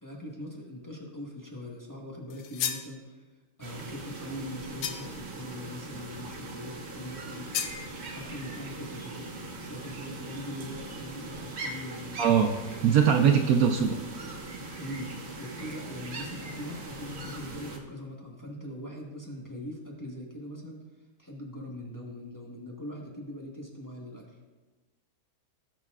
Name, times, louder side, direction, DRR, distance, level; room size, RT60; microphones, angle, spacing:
voice 1, 0.0-3.3 3.6-7.5 8.1-12.2 14.8-20.8 21.2-24.4, left 1 dB, 15° left, -2 dB, 1.2 m, -41 dB
sound 1, 2.3-2.9 4.8-5.3 7.5-7.8, left 8 dB, 70° left, 1.2 m, -33 dB
sound 2, 3.6-17.8, right 2 dB, 45° right, 1.1 m, -41 dB
voice 2, 12.2-12.5 12.8-14.0, right 7 dB, 70° right, 4 dB, 0.9 m, -21 dB
17.5 x 7.0 x 2.4 m, 1.2 s
omnidirectional pair, 1.8 m